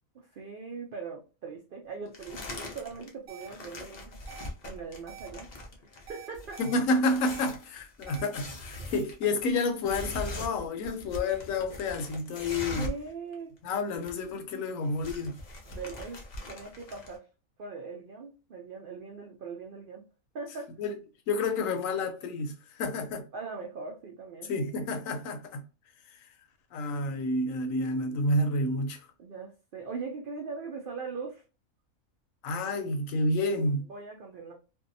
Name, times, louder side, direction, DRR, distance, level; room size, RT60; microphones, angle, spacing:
voice 1, 0.1-4.2 4.6-5.5 5.9-6.6 12.8-13.5 15.7-16.2 16.5-17.3 17.6-20.0 20.3-20.7 23.3-24.5 29.2-31.4 33.9-34.5, right 4 dB, 70° right, 0.5 m, -40 dB
sound 1, 2.1-3.1 3.4-13.1 13.3-13.4 13.7-14.4 14.7-17.2, left 2 dB, 55° left, 0.5 m, -41 dB
sound 2, 3.3-3.5 4.3-4.5 5.1-5.3 6.1-6.7 7.3-7.5 8.1-8.3, right 12 dB, 90° right, 1.1 m, -46 dB
voice 2, 6.6-12.9 13.6-15.4 20.8-21.0 21.3-23.2 24.5-25.6 26.7-29.0 32.4-33.8, left 2 dB, 75° left, 1.0 m, -29 dB
2.6 x 2.2 x 2.6 m
omnidirectional pair, 1.4 m